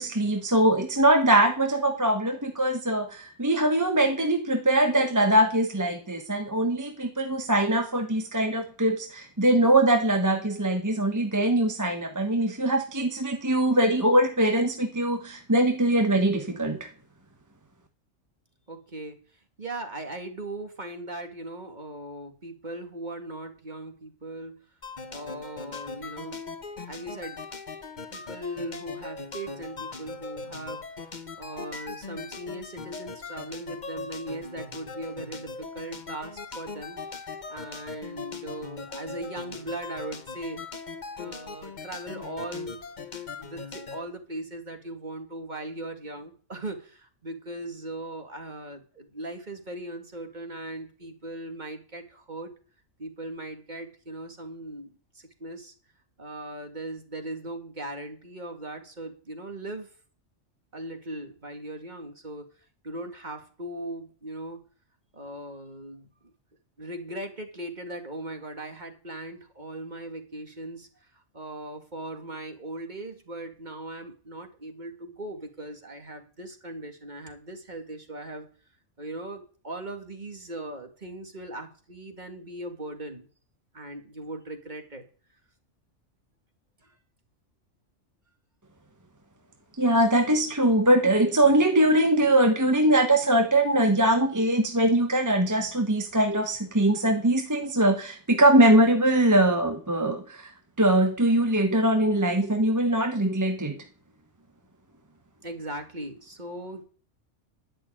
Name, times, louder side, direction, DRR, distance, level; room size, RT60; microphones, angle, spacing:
voice 1, 0.0-16.9 89.8-100.5 100.8-103.8, right 1 dB, 15° right, 5 dB, 1.0 m, -22 dB
voice 2, 18.7-19.2 19.6-24.7 25.1-26.4 26.9-27.4 28.1-30.8 31.4-40.6 41.2-42.8 43.4-52.5 53.0-55.7 56.2-59.9 60.7-62.5 62.8-64.6 65.1-66.3 66.8-78.5 79.0-83.3 83.7-85.0 86.8-87.0 90.0-90.1 105.4-106.8, right 1 dB, 35° right, 5 dB, 2.3 m, -39 dB
sound 1, 24.8-44.0, left 4 dB, 40° left, 1.2 m, -40 dB
11.5 x 6.3 x 8.7 m, 0.41 s
omnidirectional pair, 1.3 m